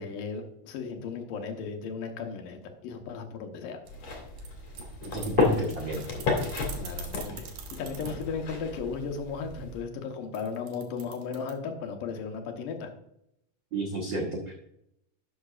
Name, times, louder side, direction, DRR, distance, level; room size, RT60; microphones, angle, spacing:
voice 1, 0.0-3.8 6.7-12.9, left 5 dB, 75° left, 4 dB, 2.7 m, -36 dB
sound 1, 3.8-9.8, left 4 dB, 50° left, 3.1 m, -32 dB
broken umbrella squeaks, 3.9-8.2 10.3-11.5, right 8 dB, 85° right, 3.0 m, -44 dB
voice 2, 5.0-6.0 13.7-14.4, right 2 dB, 70° right, 0 dB, 1.1 m, -31 dB
12.0 x 7.9 x 2.4 m, 0.76 s
omnidirectional pair, 3.9 m